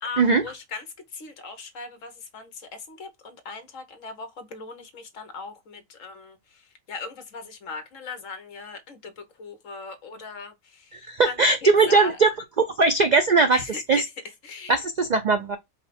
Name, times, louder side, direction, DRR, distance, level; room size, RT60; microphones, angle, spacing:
voice 1, 0.0-12.2 13.5-14.8, left 4 dB, 70° left, 1.3 m, -39 dB
voice 2, 10.9-12.3 12.8-13.6 13.9-14.0 14.7-15.6, right 3 dB, 75° right, 0.4 m, -19 dB
5.0 x 2.1 x 4.1 m
omnidirectional pair, 1.4 m